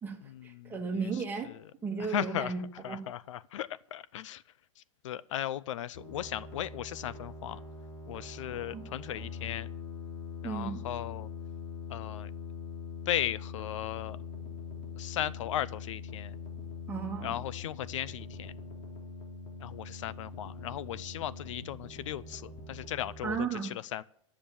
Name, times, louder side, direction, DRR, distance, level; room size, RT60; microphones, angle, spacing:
voice 1, 0.4-1.5 1.8-2.6 2.9-3.0 8.7-8.8 10.4-10.8 16.9-17.4 23.2-23.8, right 5 dB, 10° right, 2 dB, 2.1 m, -34 dB
voice 2, 2.1-2.5 2.8-4.4 5.0-7.6 8.1-9.7 10.4-11.3 11.9-12.3 13.1-14.2 15.0-16.3 17.2-18.5 19.6-23.6 23.9-24.0, left 12 dB, 70° left, 19 dB, 0.5 m, -36 dB
sound 1, 5.9-23.3, left 5 dB, 45° left, 3.3 m, -43 dB
12.0 x 7.3 x 8.7 m, 0.69 s
supercardioid pair, 150°, 17 cm